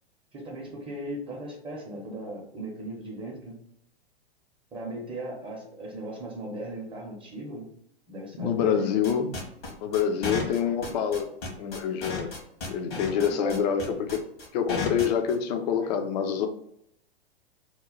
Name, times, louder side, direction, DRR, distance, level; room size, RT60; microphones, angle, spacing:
voice 1, 0.3-3.6 4.7-7.7 8.1-8.9 12.9-14.0, right 1 dB, 15° right, -1 dB, 0.7 m, -37 dB
voice 2, 8.4-9.3 9.8-11.3 11.6-12.3 12.7-14.2 14.5-16.5, left 8 dB, 45° left, 6 dB, 0.5 m, -26 dB
sound 1, 9.0-15.3, left 4 dB, 75° left, 1.3 m, -33 dB
2.9 x 2.3 x 3.6 m, 0.74 s
figure-of-eight pair, 105°, 30 cm